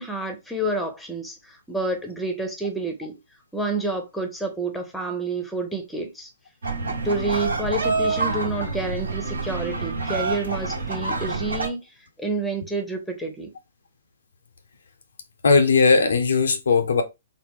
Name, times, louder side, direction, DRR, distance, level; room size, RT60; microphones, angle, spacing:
voice 1, 0.0-3.2 3.5-6.3 7.0-11.8 12.2-13.5, right 2 dB, ahead, 0.9 m, -29 dB
sound 1, 6.6-11.7, right 3 dB, 65° right, 1.2 m, -27 dB
voice 2, 15.4-17.0, left 4 dB, 65° left, 0.7 m, -18 dB
3.9 x 2.1 x 3.6 m
figure-of-eight pair, 120°, 0 cm